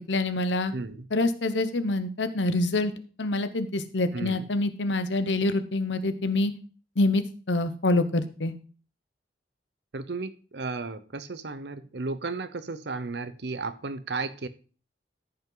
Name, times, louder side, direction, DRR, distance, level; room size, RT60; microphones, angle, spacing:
voice 1, 0.0-0.7 1.1-2.9 3.2-6.5 7.0-8.5, left 2 dB, 85° left, 10 dB, 1.0 m, -26 dB
voice 2, 0.7-1.1 4.1-4.5 9.9-14.5, right 3 dB, 65° right, 11 dB, 0.8 m, -34 dB
14.0 x 5.5 x 3.9 m, 0.38 s
head